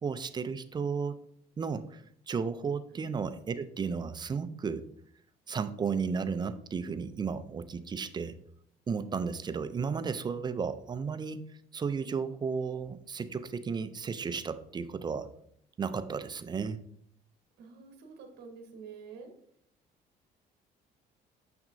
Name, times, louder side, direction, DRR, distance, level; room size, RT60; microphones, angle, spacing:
voice 1, 0.0-1.2 1.6-4.9 5.5-8.4 8.9-11.4 11.7-15.3 15.8-16.8, right 5 dB, 25° right, 12 dB, 0.4 m, -34 dB
voice 2, 17.6-19.3, right 5 dB, 75° right, 4 dB, 1.1 m, -48 dB
6.5 x 5.9 x 2.6 m, 0.67 s
cardioid pair, 110°, 17 cm